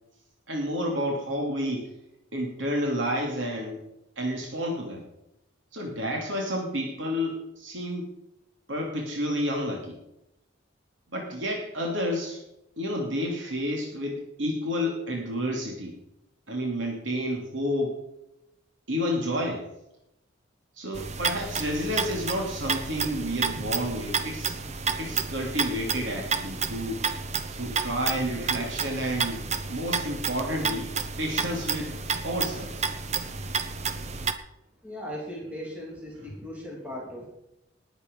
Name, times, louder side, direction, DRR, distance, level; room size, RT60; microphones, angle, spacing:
voice 1, 0.5-1.9 2.3-3.8 4.2-5.0 5.7-8.1 8.7-10.0 11.1-12.4 12.8-16.0 16.5-18.0 18.9-19.6 20.8-24.5 25.0-27.0 27.5-31.9 32.2-32.9, equal, 80° right, 0 dB, 2.9 m, -30 dB
sound 1, 20.9-34.3, right 5 dB, 35° right, 0.9 m, -31 dB
voice 2, 34.8-37.3, equal, 5° right, -3 dB, 3.4 m, -38 dB
19.5 x 8.2 x 5.4 m, 0.85 s
head